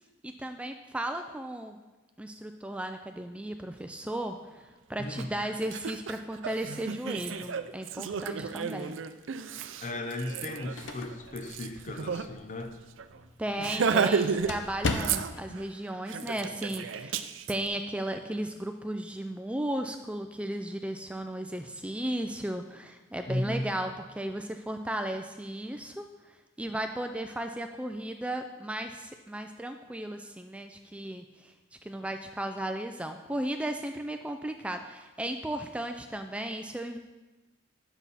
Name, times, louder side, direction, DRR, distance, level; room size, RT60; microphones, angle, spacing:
voice 1, 0.2-1.8 2.2-9.0 13.4-31.5 31.8-37.0, right 1 dB, 5° right, 6 dB, 0.3 m, -35 dB
Laughter, 5.2-5.3 5.6-12.3 12.6-12.7 13.0-13.2 13.6-14.5 14.8-15.6 16.1-17.5, right 6 dB, 75° right, 0.5 m, -32 dB
voice 2, 9.8-12.7 13.9-14.1 23.3-23.7, left 1 dB, 40° left, 6 dB, 0.8 m, -35 dB
sound 1, 10.3-15.6, left 3 dB, 70° left, 0.8 m, -38 dB
10.0 x 7.0 x 4.1 m, 1.2 s
head